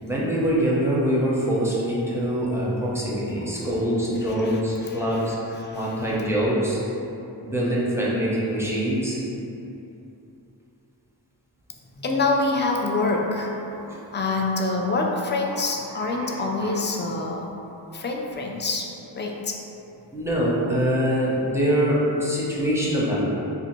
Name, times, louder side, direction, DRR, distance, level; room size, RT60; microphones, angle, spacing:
voice 1, 0.0-5.4 5.7-6.8 7.4-9.2 13.7-14.0 15.5-15.6 16.0-16.8 20.1-23.2, equal, 5° right, -7 dB, 0.8 m, -24 dB
voice 2, 3.4-4.0 4.3-6.1 12.0-13.6 14.1-17.5 17.9-19.6, left 3 dB, 25° left, 0 dB, 0.4 m, -27 dB
2.8 x 2.5 x 4.3 m, 2.9 s
wide cardioid pair, 50°, 45 cm